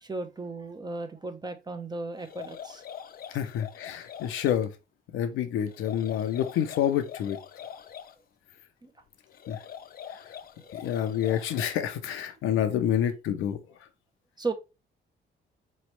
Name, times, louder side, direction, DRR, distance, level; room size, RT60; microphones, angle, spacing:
voice 1, 0.0-2.8 8.8-8.9 10.6-10.7 14.4-14.5, right 3 dB, 20° right, 0.8 m, -35 dB
sound 1, 2.2-4.6 5.7-8.1 9.3-11.9, left 9 dB, 50° left, 0.5 m, -43 dB
voice 2, 3.3-4.7 5.1-7.4 9.5-9.6 10.7-13.6, left 10 dB, 85° left, 0.7 m, -28 dB
4.0 x 3.2 x 3.1 m
cardioid pair, 90°, 20 cm